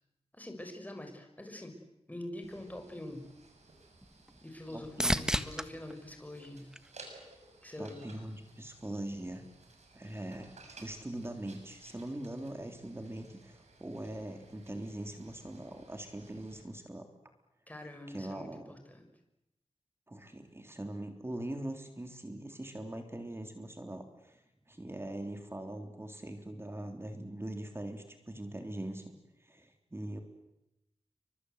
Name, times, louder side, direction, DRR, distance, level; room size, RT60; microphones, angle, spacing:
voice 1, 0.3-1.7 2.1-3.2 4.4-6.7 7.6-8.0 17.7-19.0, left 1 dB, 15° left, 4 dB, 6.2 m, -45 dB
sound 1, 2.4-16.6, right 3 dB, 85° right, 6.8 m, -58 dB
sound 2, 3.3-7.5 8.0-8.6 16.4-16.5, equal, 5° right, 1.5 m, -37 dB
voice 2, 4.7-5.3 7.8-9.4 9.9-17.1 18.1-18.7 20.1-24.4 24.7-30.2, right 1 dB, 20° right, 5 dB, 3.4 m, -42 dB
30.0 x 24.5 x 8.1 m, 0.89 s
wide cardioid pair, 75°, 11 cm